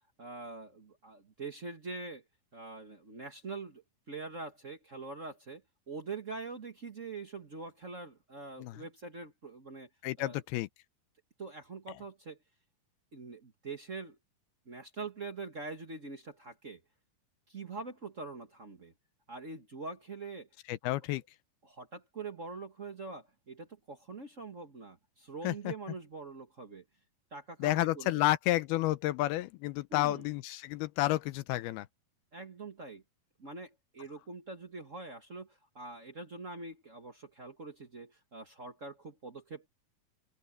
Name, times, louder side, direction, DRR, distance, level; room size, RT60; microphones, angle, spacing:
voice 1, 0.2-2.2 2.5-9.9 10.2-10.4 11.4-12.4 13.1-14.2 14.6-16.8 17.5-18.9 19.3-20.5 21.6-26.8 27.3-28.2 29.9-30.2 32.3-33.0 33.4-39.7, right 3 dB, 50° right, 0.8 m, -44 dB
voice 2, 10.0-10.7 20.7-21.2 25.4-25.7 27.6-31.9, left 16 dB, 85° left, 2.7 m, -31 dB
open air
omnidirectional pair, 4.4 m